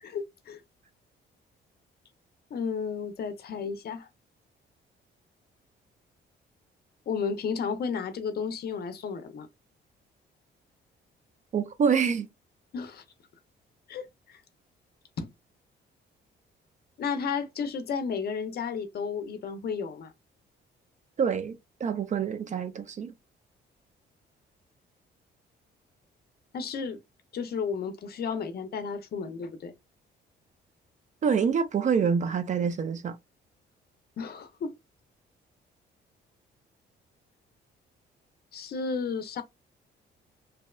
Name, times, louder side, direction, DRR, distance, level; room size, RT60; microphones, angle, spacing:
voice 1, 0.0-0.6 2.5-4.1 7.1-9.5 12.7-13.0 13.9-14.4 15.2-15.3 17.0-20.1 26.5-27.0 27.3-29.7 34.2-34.7 38.5-39.4, left 5 dB, 50° left, 0.5 m, -33 dB
voice 2, 11.5-12.3 21.2-23.1 31.2-33.2, right 6 dB, 40° right, 0.4 m, -26 dB
2.7 x 2.1 x 2.2 m
cardioid pair, 90°, 20 cm